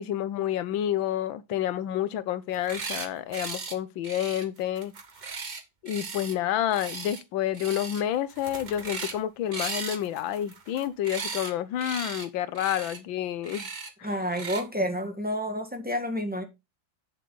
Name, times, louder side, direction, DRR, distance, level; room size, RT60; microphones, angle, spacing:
voice 1, 0.0-4.9 5.8-13.7 14.0-14.1, left 11 dB, 85° left, 1.5 m, -29 dB
sound 1, 2.5-3.1 3.3-3.8 4.0-6.4 6.7-7.2 7.5-8.0 8.3-9.2 9.5-11.5 11.8-12.3 12.6-13.0 13.4-13.9 14.3-14.6, right 4 dB, 35° right, 0.9 m, -37 dB
voice 2, 14.0-16.4, equal, 5° right, 1.4 m, -29 dB
8.2 x 6.5 x 3.8 m
omnidirectional pair, 2.1 m